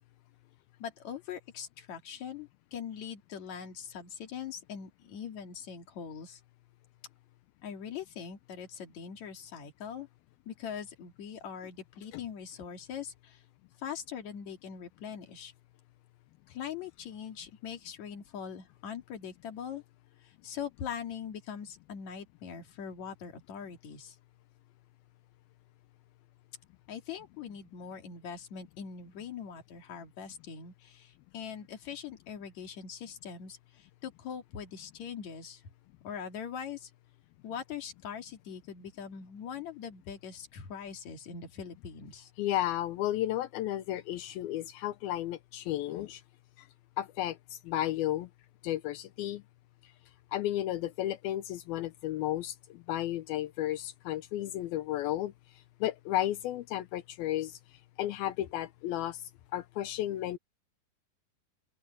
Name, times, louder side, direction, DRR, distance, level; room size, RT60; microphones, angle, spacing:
voice 1, 0.8-6.4 7.6-10.1 10.5-13.4 13.8-15.5 16.5-19.8 20.2-24.2 26.9-35.6 36.0-36.9 37.4-42.3, left 7 dB, 50° left, 3.5 m, -42 dB
voice 2, 42.4-46.2 46.6-46.7 47.0-48.3 48.6-49.4 50.3-55.3 55.8-57.6 58.0-59.2 59.5-60.4, left 13 dB, 80° left, 2.6 m, -33 dB
open air
omnidirectional pair, 4.4 m